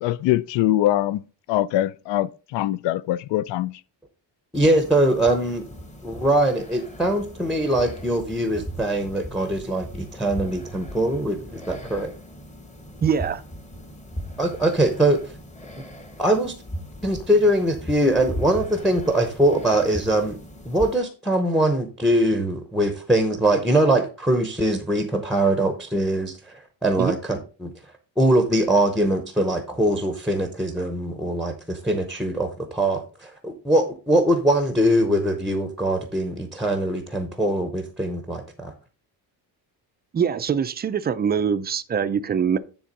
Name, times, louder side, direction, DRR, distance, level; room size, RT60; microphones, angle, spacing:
voice 1, 0.0-1.2 1.5-3.7, left 14 dB, 70° left, 0.5 m, -23 dB
sound 1, 4.5-21.0, equal, 15° left, 1.0 m, -38 dB
voice 2, 4.5-5.6 6.0-12.1 14.4-15.2 16.2-16.5 17.0-20.4 20.7-27.7 28.2-38.7, right 1 dB, ahead, 0.7 m, -22 dB
voice 3, 13.0-13.4 27.0-27.2 40.1-42.6, right 7 dB, 25° right, 0.3 m, -23 dB
10.0 x 3.7 x 5.2 m
cardioid pair, 175°, 45 cm